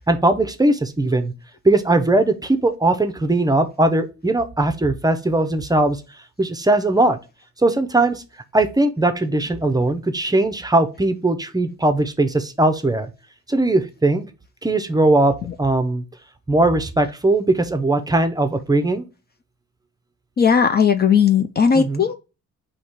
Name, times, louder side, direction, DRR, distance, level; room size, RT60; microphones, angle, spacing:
voice 1, 0.1-1.3 1.6-6.0 6.4-7.2 7.6-8.2 8.5-13.1 13.5-14.3 14.6-16.0 16.5-19.0 21.7-22.1, right 2 dB, 15° right, 0.6 m, -19 dB
voice 2, 20.4-22.1, left 7 dB, 35° left, 0.4 m, -16 dB
4.1 x 2.9 x 4.5 m
cardioid pair, 90°, 30 cm